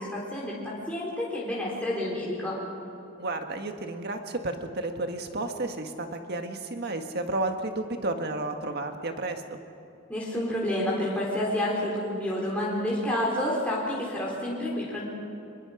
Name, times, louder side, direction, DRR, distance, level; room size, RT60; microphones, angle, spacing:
voice 1, 0.0-2.6 10.1-15.0, left 1 dB, 5° left, -6 dB, 3.9 m, -29 dB
voice 2, 3.2-9.6, right 2 dB, 50° right, 5 dB, 1.6 m, -32 dB
24.5 x 22.5 x 5.1 m, 2.8 s
head